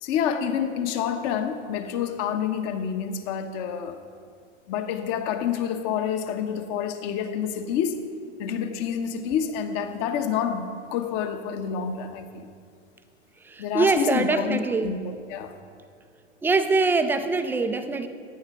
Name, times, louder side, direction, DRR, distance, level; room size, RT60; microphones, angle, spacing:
voice 1, 0.0-4.0 4.7-8.0 8.4-12.5 13.6-15.5, left 8 dB, 40° left, 8 dB, 1.1 m, -28 dB
voice 2, 13.4-14.9 16.4-18.1, right 3 dB, 5° right, 8 dB, 0.3 m, -23 dB
15.5 x 9.8 x 4.6 m, 2.3 s
figure-of-eight pair, 95°, 37 cm